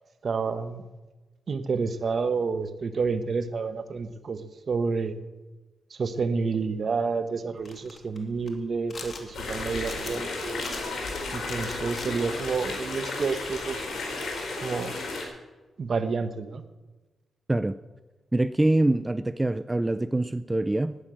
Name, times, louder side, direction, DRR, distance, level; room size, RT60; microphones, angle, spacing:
voice 1, 0.2-0.8 1.5-5.1 5.9-10.6 11.3-13.9 14.6-14.9 15.8-16.6, right 4 dB, 55° right, 11 dB, 1.1 m, -29 dB
sound 1, 7.6-12.6 13.3-14.1, left 3 dB, 45° left, 2.5 m, -43 dB
sound 2, 9.3-15.2, left 3 dB, 70° left, 4.6 m, -33 dB
voice 2, 18.3-21.0, right 2 dB, 15° right, 13 dB, 0.4 m, -24 dB
11.5 x 9.8 x 8.8 m, 1.2 s
cardioid pair, 80°, 0 cm